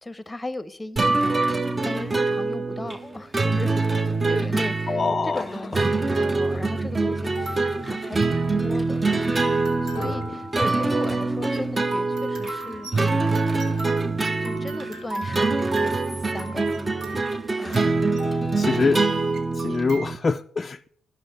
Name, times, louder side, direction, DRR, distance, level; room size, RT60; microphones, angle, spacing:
voice 1, 0.0-1.4 1.8-3.8 4.3-9.0 9.8-13.4 14.4-15.9 16.3-17.1 17.6-17.9, left 2 dB, 15° left, 0.7 m, -37 dB
sound 1, 1.0-20.2, right 3 dB, 25° right, 0.6 m, -24 dB
sound 2, 4.3-4.8 5.6-5.7 7.3-20.0, right 2 dB, 85° right, 2.3 m, -37 dB
voice 2, 4.9-5.5 10.0-10.2 17.5-18.0 18.5-19.1 19.5-20.9, left 4 dB, 30° left, 0.3 m, -25 dB
12.0 x 5.2 x 6.5 m
cardioid pair, 90°, 0 cm